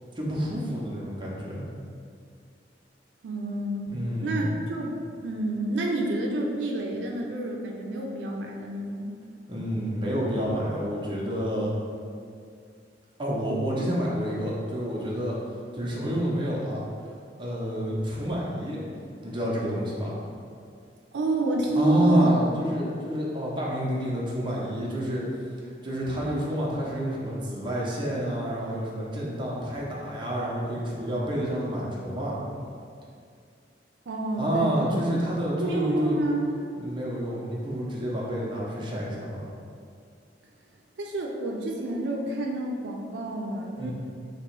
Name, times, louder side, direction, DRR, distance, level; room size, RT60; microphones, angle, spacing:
voice 1, 0.1-1.7 3.9-4.5 9.5-11.7 13.2-15.3 15.7-16.8 17.4-18.8 19.2-20.1 21.7-25.2 25.6-32.4 34.4-36.2 36.7-39.4 43.8-43.9, equal, 30° right, -5 dB, 0.7 m, -28 dB
voice 2, 3.2-3.9 4.2-9.2 21.1-22.3 34.1-34.9 35.6-36.6 41.0-43.9, right 1 dB, 90° right, 0 dB, 0.4 m, -29 dB
3.0 x 2.9 x 4.5 m, 2.3 s
head